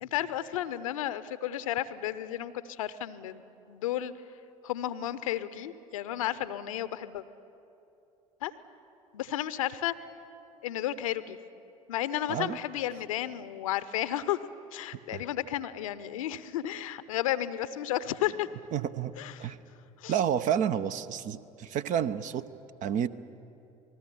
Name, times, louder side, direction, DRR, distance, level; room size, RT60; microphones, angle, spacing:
voice 1, 0.0-3.4 3.7-4.1 4.6-7.2 8.4-8.5 9.1-9.9 10.6-11.4 11.9-18.5 19.2-19.5 20.0-20.1, left 12 dB, 65° left, 15 dB, 0.8 m, -33 dB
voice 2, 18.7-19.1 19.4-19.6 20.1-22.5 22.8-23.1, right 9 dB, 45° right, 12 dB, 0.8 m, -29 dB
27.5 x 19.5 x 7.0 m, 2.8 s
figure-of-eight pair, 65°, 19 cm